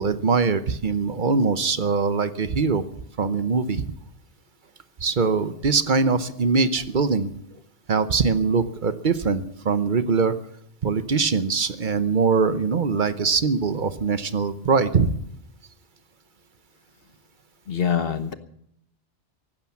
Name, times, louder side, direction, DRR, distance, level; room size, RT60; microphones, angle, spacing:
voice 1, 0.0-2.8 3.2-3.8 5.0-7.3 7.9-10.3 10.8-15.1, right 4 dB, 45° right, 12 dB, 0.9 m, -22 dB
voice 2, 17.7-18.3, left 7 dB, 55° left, 11 dB, 1.3 m, -24 dB
15.5 x 12.0 x 7.2 m, 0.72 s
omnidirectional pair, 1.2 m